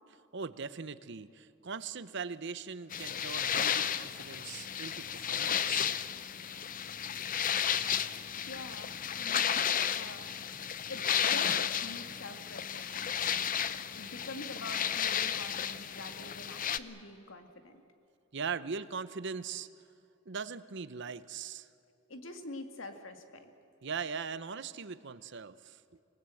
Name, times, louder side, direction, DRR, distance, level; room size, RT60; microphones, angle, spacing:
voice 1, 0.3-5.9 18.3-19.7 20.3-21.7 23.8-25.8, right 5 dB, 60° right, 15 dB, 0.8 m, -40 dB
sound 1, 2.9-16.8, left 8 dB, 40° left, 0.7 m, -33 dB
voice 2, 8.3-10.3 10.9-13.1 14.0-17.8 22.1-23.5, left 2 dB, 70° left, 6 dB, 2.2 m, -46 dB
27.0 x 19.0 x 7.8 m, 2.8 s
head